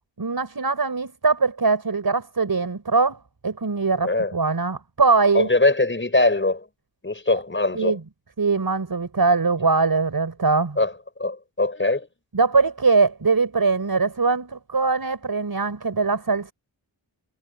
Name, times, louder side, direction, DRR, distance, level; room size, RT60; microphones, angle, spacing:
voice 1, 0.2-5.5 7.7-8.0 8.4-10.8 12.3-16.5, right 4 dB, 50° right, 5.4 m, -22 dB
voice 2, 4.0-4.3 5.3-6.7 7.0-8.0 10.8-10.9 11.2-12.1, left 2 dB, 25° left, 5.3 m, -21 dB
wide cardioid pair, 90°, 46 cm